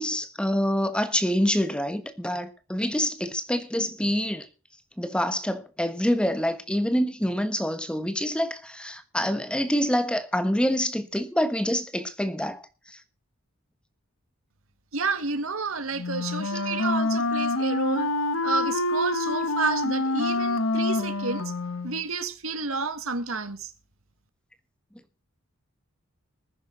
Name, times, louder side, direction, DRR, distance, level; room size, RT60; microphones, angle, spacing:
voice 1, 0.0-4.5 5.0-12.6, equal, 5° left, 1.2 m, -26 dB
voice 2, 14.9-18.1 18.4-21.5 21.8-23.7, right 4 dB, 90° right, 1.8 m, -30 dB
Wind instrument woodwind instrument, 15.9-22.0, left 2 dB, 85° left, 1.3 m, -26 dB
19.0 x 10.5 x 3.9 m
head